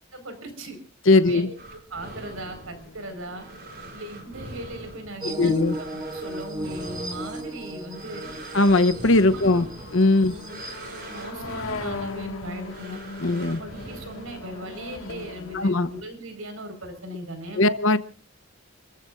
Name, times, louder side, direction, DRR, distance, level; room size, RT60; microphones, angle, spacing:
voice 1, 0.1-0.8 1.1-3.5 3.9-8.3 9.0-9.8 10.3-10.6 11.1-13.0 13.5-17.6, right 1 dB, 85° right, 6 dB, 5.1 m, -39 dB
voice 2, 1.1-1.5 5.4-5.7 8.5-9.6 9.9-10.3 13.2-13.6 15.5-15.9 17.6-18.0, left 2 dB, 65° left, 11 dB, 1.0 m, -19 dB
sound 1, 1.6-14.9, right 1 dB, 50° right, 6.2 m, -43 dB
sound 2, 2.4-16.0, left 3 dB, 90° left, 2.0 m, -40 dB
sound 3, 5.2-11.2, right 1 dB, 20° right, 2.2 m, -36 dB
29.5 x 15.0 x 2.6 m, 0.39 s
head